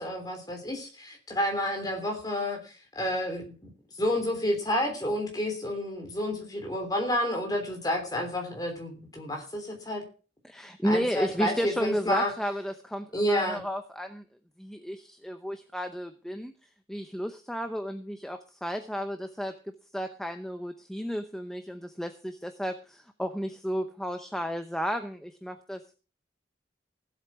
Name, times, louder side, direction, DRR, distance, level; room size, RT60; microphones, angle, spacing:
voice 1, 0.0-2.6 2.9-3.7 4.0-10.0 10.8-12.3 13.1-13.6, equal, 20° left, 2 dB, 3.3 m, -30 dB
voice 2, 10.4-14.2 14.6-16.5 16.9-25.9, equal, 5° left, 7 dB, 0.8 m, -33 dB
16.0 x 8.1 x 6.0 m, 0.37 s
head